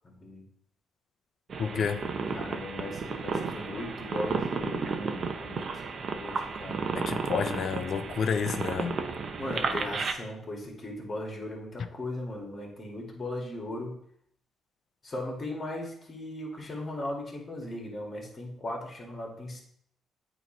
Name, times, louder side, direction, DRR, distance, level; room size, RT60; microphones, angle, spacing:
voice 1, 0.0-0.5 2.3-5.8 6.1-6.9 9.4-14.0 15.0-19.6, left 1 dB, 35° left, 1.9 m, -38 dB
sound 1, 1.5-10.1, right 5 dB, 50° right, 0.7 m, -33 dB
voice 2, 1.6-2.0 7.0-9.0, left 6 dB, 60° left, 0.5 m, -30 dB
8.2 x 3.0 x 4.3 m
cardioid pair, 90°, 0 cm